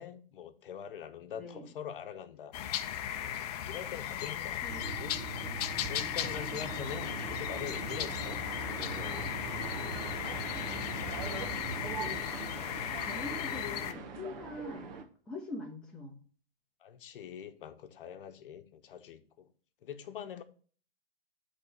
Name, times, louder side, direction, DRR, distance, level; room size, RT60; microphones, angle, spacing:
voice 1, 0.0-2.5 3.2-4.7 5.0-5.3 5.9-9.3 16.8-19.5 19.8-20.4, left 9 dB, 60° left, 1.0 m, -44 dB
voice 2, 1.3-1.7 4.1-5.0 5.9-6.4 10.6-11.6 11.9-12.2 13.0-14.9 15.2-16.2, left 3 dB, 5° left, 1.4 m, -45 dB
sound 1, 2.5-13.9, left 10 dB, 40° left, 0.6 m, -36 dB
sound 2, 4.7-12.2, right 5 dB, 25° right, 0.6 m, -43 dB
sound 3, 6.2-15.0, right 5 dB, 45° right, 1.3 m, -44 dB
8.1 x 3.6 x 5.4 m
hypercardioid pair, 145°, 30 cm